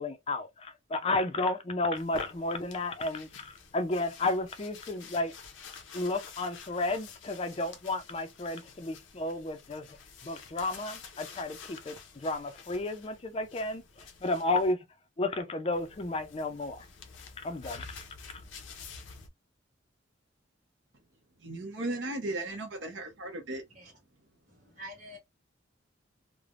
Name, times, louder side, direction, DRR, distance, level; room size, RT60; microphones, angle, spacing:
voice 1, 0.0-5.3 5.9-9.9 10.2-13.8 14.2-14.8 15.2-16.8 17.4-17.8, left 2 dB, 30° left, 0.4 m, -32 dB
sound 1, 1.9-14.7 15.7-19.3, left 5 dB, 75° left, 0.6 m, -49 dB
voice 2, 21.4-23.6, right 2 dB, 70° right, 0.8 m, -36 dB
voice 3, 24.5-25.2, equal, 40° right, 1.4 m, -46 dB
3.2 x 2.1 x 2.4 m
head